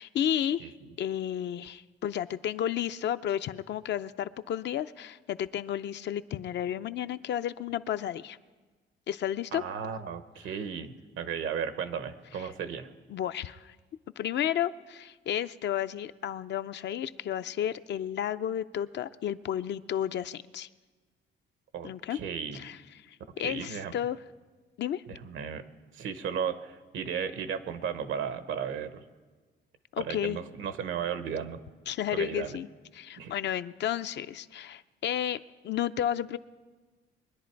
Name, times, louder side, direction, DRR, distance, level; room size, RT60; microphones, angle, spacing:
voice 1, 0.0-8.4 9.1-9.6 13.1-13.7 14.2-20.7 21.8-22.2 22.5-22.8 23.1-24.2 24.8-25.0 29.9-30.4 31.9-32.7 32.9-36.4, left 10 dB, 65° left, 12 dB, 0.5 m, -32 dB
voice 2, 0.6-0.9 9.5-12.9 21.7-22.7 23.4-23.9 25.1-25.6 25.9-29.0 30.0-31.6 32.1-32.6 33.2-33.3, right 7 dB, 80° right, 11 dB, 1.0 m, -35 dB
22.5 x 10.5 x 4.6 m, 1.4 s
cardioid pair, 90°, 20 cm